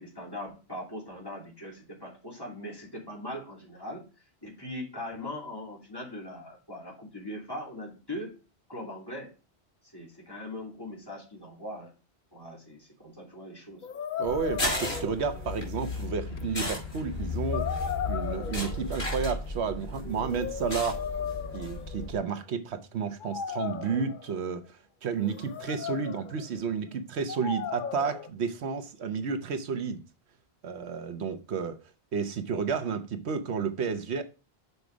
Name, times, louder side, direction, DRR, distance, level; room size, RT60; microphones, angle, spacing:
voice 1, 0.0-4.1 4.4-8.4 8.7-9.3 9.8-11.9 12.3-13.9, left 1 dB, 20° left, 2.9 m, -40 dB
sound 1, 13.8-15.5 16.4-16.5 17.5-19.0 20.0-22.3 23.2-24.4 25.1-26.5 27.3-28.3, left 8 dB, 55° left, 0.6 m, -36 dB
sound 2, 14.2-22.2, left 2 dB, 75° left, 4.4 m, -34 dB
voice 2, 14.2-17.7 18.1-21.1 21.5-30.0 30.6-31.8 32.1-34.2, right 6 dB, 85° right, 1.1 m, -31 dB
6.8 x 4.7 x 5.0 m
omnidirectional pair, 1.1 m